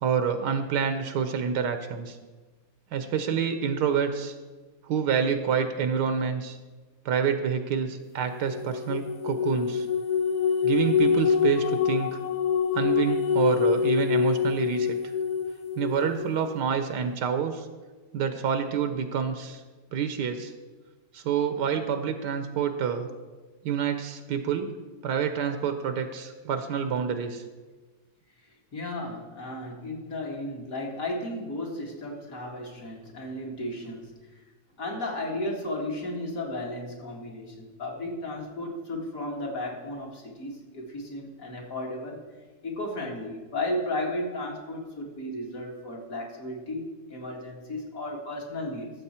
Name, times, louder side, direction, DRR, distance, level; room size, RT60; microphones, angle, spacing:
voice 1, 0.0-2.2 2.9-4.3 4.9-6.6 7.0-9.9 10.6-12.2 12.7-15.0 15.8-17.7 18.1-19.6 19.9-20.5 21.1-23.1 23.6-24.7 25.0-27.4, right 7 dB, 80° right, 8 dB, 1.4 m, -27 dB
sound 1, 8.5-16.3, left 7 dB, 70° left, 1.1 m, -25 dB
voice 2, 28.4-34.4 34.8-42.2 42.6-48.9, left 1 dB, 50° left, -1 dB, 2.2 m, -34 dB
13.5 x 7.4 x 4.3 m, 1.3 s
omnidirectional pair, 1.8 m